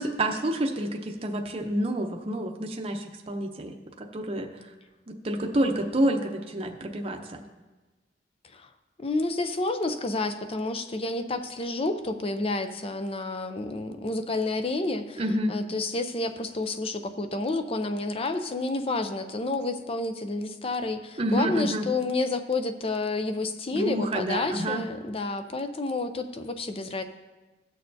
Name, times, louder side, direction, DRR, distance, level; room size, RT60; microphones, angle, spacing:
voice 1, 0.0-4.5 5.1-7.4 15.2-15.5 21.2-21.9 23.7-24.9, right 1 dB, 35° right, 2 dB, 0.7 m, -28 dB
voice 2, 9.0-27.0, left 2 dB, 35° left, 8 dB, 0.6 m, -30 dB
16.5 x 6.6 x 2.7 m, 1.2 s
head